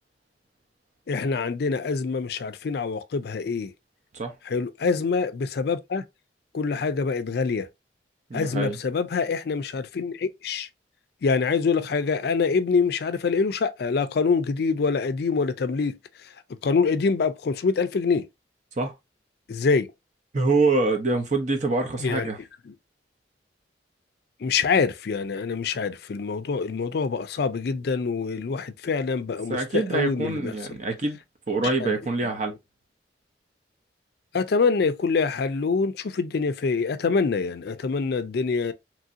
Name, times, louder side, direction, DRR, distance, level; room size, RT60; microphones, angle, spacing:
voice 1, 1.1-3.7 4.5-6.0 6.5-7.7 8.3-10.7 11.2-16.0 16.6-18.3 19.5-19.9 22.0-22.3 24.4-30.5 31.6-32.0 32.5-32.6 34.3-38.7, left 5 dB, 60° left, 0.4 m, -25 dB
voice 2, 8.3-8.8 18.8-18.9 20.3-22.4 29.5-31.2 31.5-32.5, right 3 dB, 40° right, 0.6 m, -25 dB
3.0 x 2.7 x 2.4 m
head